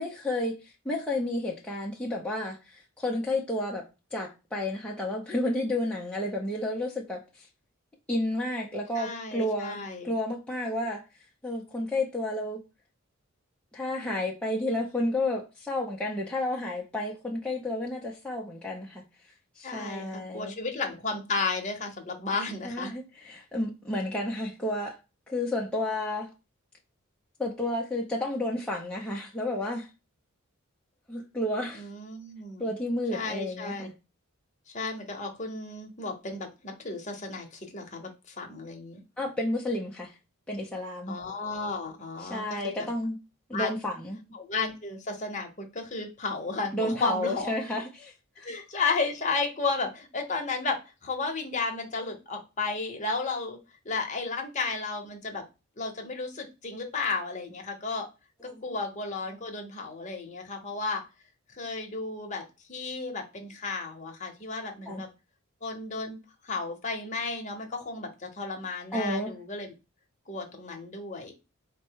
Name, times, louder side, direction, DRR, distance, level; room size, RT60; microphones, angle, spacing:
voice 1, 0.0-3.8 4.1-7.5 8.1-11.0 11.4-12.6 13.7-19.0 19.6-20.6 22.6-25.0 25.3-26.3 27.4-29.9 31.1-31.9 32.6-33.9 39.2-40.1 40.5-41.2 42.2-43.2 43.5-44.2 46.7-48.5 58.5-58.7 64.9-65.0 68.9-69.3, left 1 dB, 5° left, 0.6 m, -31 dB
voice 2, 8.9-10.1 19.6-22.9 31.8-32.7 33.1-33.9 34.7-39.0 41.1-42.9 43.5-43.7 44.3-47.5 48.4-53.6 53.8-55.4 55.8-58.1 58.6-61.0 61.5-62.4 62.7-65.1 65.6-66.2 66.4-69.7 70.3-71.3, left 3 dB, 35° left, 0.9 m, -33 dB
4.3 x 2.1 x 4.5 m
head